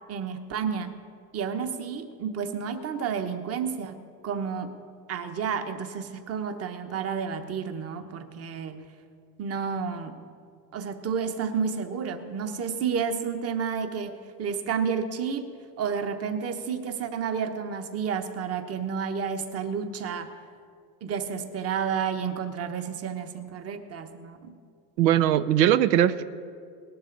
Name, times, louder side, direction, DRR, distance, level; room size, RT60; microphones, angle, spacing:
voice 1, 0.1-0.9 1.3-4.0 4.2-4.7 5.1-8.8 9.4-10.2 10.7-15.5 15.8-20.3 21.0-24.5, right 6 dB, 30° right, 8 dB, 1.1 m, -31 dB
voice 2, 25.0-26.2, right 11 dB, 90° right, 14 dB, 0.7 m, -20 dB
18.5 x 12.5 x 4.0 m, 2.2 s
supercardioid pair, 120°, 48 cm